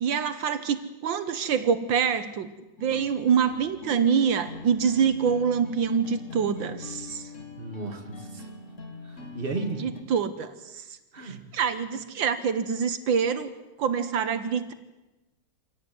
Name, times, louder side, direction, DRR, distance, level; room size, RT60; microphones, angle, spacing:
voice 1, 0.0-2.5 2.8-7.3 9.8-10.9 11.2-13.5 13.8-14.7, right 7 dB, 80° right, 10 dB, 1.8 m, -26 dB
sound 1, 2.8-10.0, left 3 dB, 40° left, 2.0 m, -42 dB
voice 2, 7.6-8.5 9.0-9.9 11.1-11.5, right 3 dB, 30° right, 4 dB, 2.5 m, -34 dB
25.0 x 17.5 x 9.4 m, 1.1 s
omnidirectional pair, 2.1 m